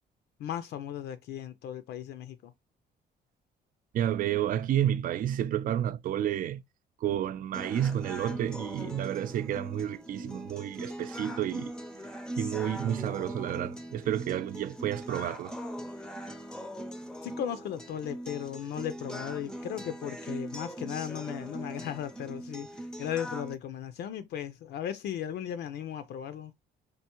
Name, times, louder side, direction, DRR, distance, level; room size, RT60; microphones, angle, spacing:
voice 1, 0.4-2.5 17.2-26.5, left 10 dB, 70° left, 0.4 m, -36 dB
voice 2, 3.9-6.6 7.0-11.7 12.3-15.5, right 11 dB, 50° right, 0.4 m, -30 dB
sound 1, 7.5-23.5, equal, 5° left, 0.5 m, -41 dB
3.4 x 2.5 x 2.9 m
cardioid pair, 90°, 18 cm